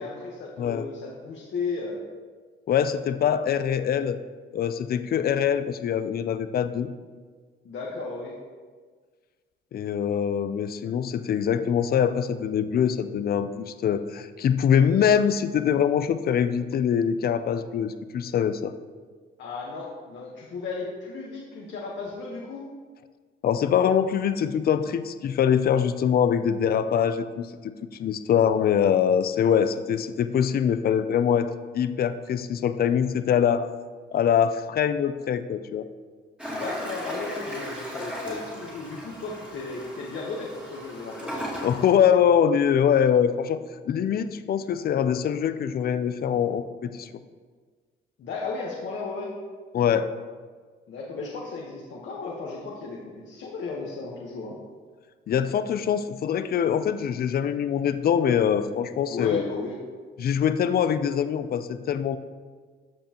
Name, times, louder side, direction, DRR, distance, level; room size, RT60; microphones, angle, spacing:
voice 1, 0.0-2.0 7.6-8.4 19.4-22.6 36.5-41.5 48.2-49.4 50.9-54.5 59.1-59.8, left 3 dB, 65° left, -3 dB, 1.3 m, -34 dB
voice 2, 2.7-4.2 4.5-6.9 9.7-18.7 23.4-27.7 28.0-33.7 34.1-35.8 41.6-43.6 43.9-47.1 49.7-50.1 55.3-59.4 60.2-62.2, left 8 dB, 50° left, 12 dB, 0.5 m, -23 dB
Toilet flush, 36.4-41.9, equal, 5° right, 2.2 m, -37 dB
14.0 x 5.3 x 3.0 m, 1.5 s
cardioid pair, 90°, 20 cm